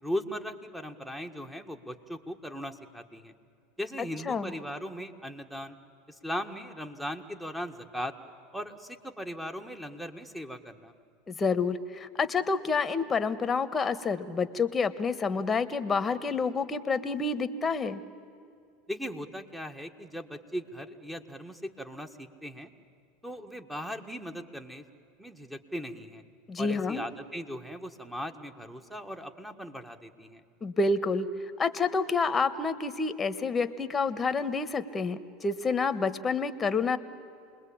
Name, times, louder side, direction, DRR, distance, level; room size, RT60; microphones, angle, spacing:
voice 1, 0.0-3.3 3.8-5.8 6.1-8.1 8.5-10.9 18.9-22.7 23.2-24.8 25.2-26.2 26.6-30.4, equal, 5° right, 6 dB, 1.7 m, -38 dB
voice 2, 11.3-18.0 26.5-27.0 30.6-31.3 31.6-37.0, left 4 dB, 20° left, 12 dB, 1.4 m, -28 dB
28.0 x 21.0 x 8.8 m, 2.4 s
supercardioid pair, 105°, 0 cm